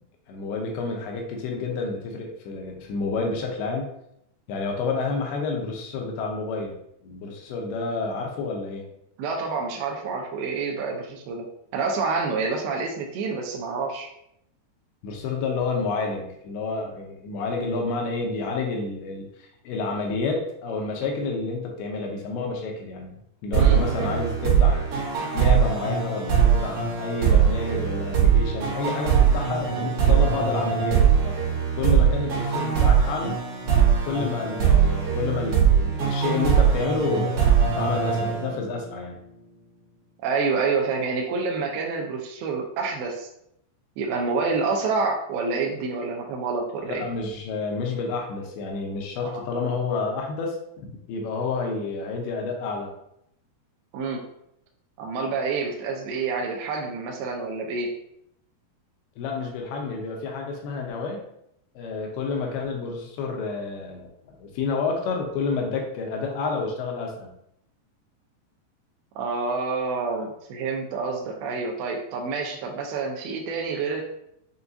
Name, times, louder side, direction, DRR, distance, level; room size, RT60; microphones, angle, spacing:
voice 1, 0.3-3.9 4.5-6.7 7.0-8.9 15.0-23.2 23.4-24.9 25.3-31.4 31.8-33.4 34.0-39.2 46.8-50.6 51.1-52.9 59.2-61.2 61.8-67.3, left 4 dB, 80° left, 1 dB, 2.4 m, -29 dB
voice 2, 9.2-11.5 11.7-14.1 23.5-24.1 40.2-43.3 44.0-47.0 49.2-49.4 53.9-54.2 55.0-57.9 69.2-74.0, right 4 dB, 85° right, 0 dB, 2.2 m, -28 dB
sound 1, 23.5-39.0, right 7 dB, 60° right, 2.1 m, -21 dB
6.9 x 2.3 x 2.5 m, 0.76 s
omnidirectional pair, 4.9 m